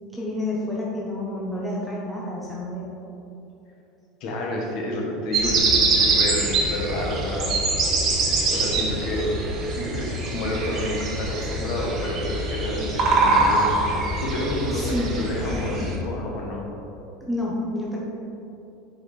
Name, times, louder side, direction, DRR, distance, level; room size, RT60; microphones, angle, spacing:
voice 1, 0.1-3.1 14.7-15.2 17.2-18.0, left 1 dB, ahead, -6 dB, 0.8 m, -29 dB
voice 2, 4.2-7.5 7.7-7.9 8.5-9.3 9.7-16.7, left 1 dB, 40° left, -2 dB, 1.5 m, -30 dB
sound 1, 5.3-16.0, right 3 dB, 30° right, 1.1 m, -24 dB
10.0 x 5.0 x 4.2 m, 3.0 s
cardioid pair, 175°, 0 cm